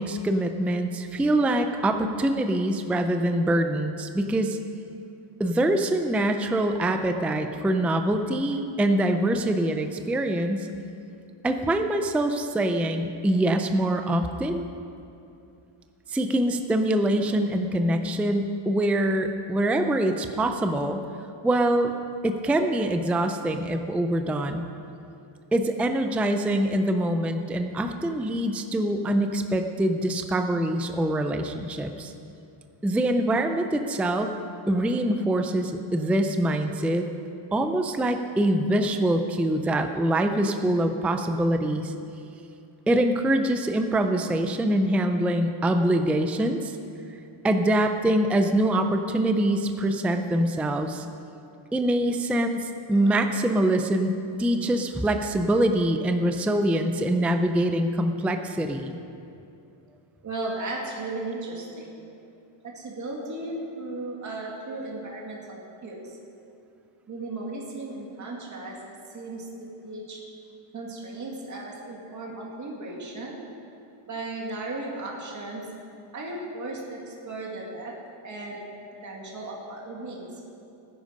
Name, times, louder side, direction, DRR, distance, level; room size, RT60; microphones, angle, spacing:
voice 1, 0.0-4.6 5.4-10.7 11.4-14.6 16.1-21.0 21.4-21.9 22.2-24.6 25.5-32.1 32.8-34.3 34.7-37.1 37.5-41.9 42.9-46.7 47.4-51.1 51.7-59.0, right 1 dB, 5° right, 6 dB, 0.4 m, -24 dB
voice 2, 60.2-62.0 62.7-66.2 67.1-68.8 69.1-69.5 69.8-70.2 70.7-73.4 74.1-75.7 76.1-77.9 78.2-78.6 79.0-80.4, right 2 dB, 35° right, -3 dB, 2.2 m, -36 dB
17.5 x 10.5 x 5.2 m, 2.7 s
wide cardioid pair, 180°, 49 cm